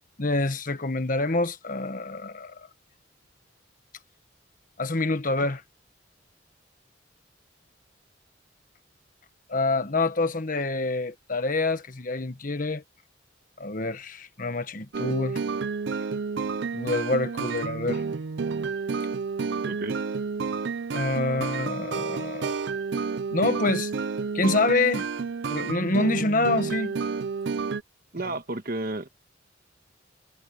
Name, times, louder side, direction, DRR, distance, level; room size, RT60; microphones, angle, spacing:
voice 1, 0.2-2.7 4.8-5.6 9.5-12.8 13.6-15.4 16.7-18.0 20.9-22.6 23.3-23.9 24.3-25.1 25.5-27.0 28.2-28.3, left 2 dB, 45° left, 1.3 m, -26 dB
sound 1, 14.9-27.8, right 5 dB, 65° right, 0.5 m, -30 dB
voice 2, 28.1-29.1, right 2 dB, 50° right, 1.4 m, -31 dB
head